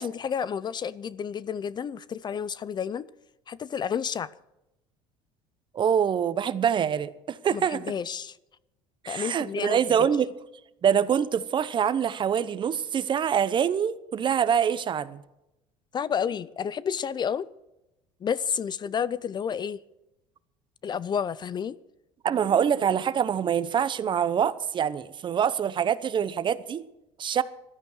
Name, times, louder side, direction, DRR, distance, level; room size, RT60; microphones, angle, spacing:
voice 1, 0.0-3.1 3.5-4.3 7.5-8.4 9.1-10.1 15.9-17.5 18.2-19.8 20.8-21.8, left 7 dB, 35° left, 0.5 m, -30 dB
voice 2, 5.7-7.8 9.0-10.3 10.8-15.2 22.2-26.8 27.2-27.4, right 8 dB, 35° right, 0.9 m, -25 dB
14.5 x 12.0 x 6.4 m
supercardioid pair, 100°, 13 cm